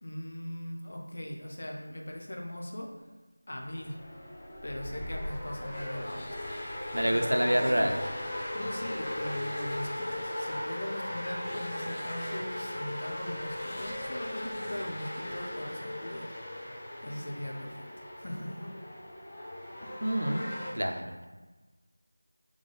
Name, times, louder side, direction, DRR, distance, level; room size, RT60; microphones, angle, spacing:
voice 1, 0.0-3.1 3.5-4.0 4.6-6.6 7.0-8.0 8.5-16.7 17.0-17.9 18.1-18.7 19.8-20.0, left 1 dB, 50° left, 1 dB, 0.7 m, -40 dB
sound 1, 3.6-20.7, left 1 dB, 15° left, 0.5 m, -38 dB
voice 2, 6.9-8.0 20.0-20.4 20.7-21.3, equal, 80° right, 3 dB, 0.6 m, -27 dB
3.8 x 3.1 x 4.0 m, 1.2 s
figure-of-eight pair, 170°, 0 cm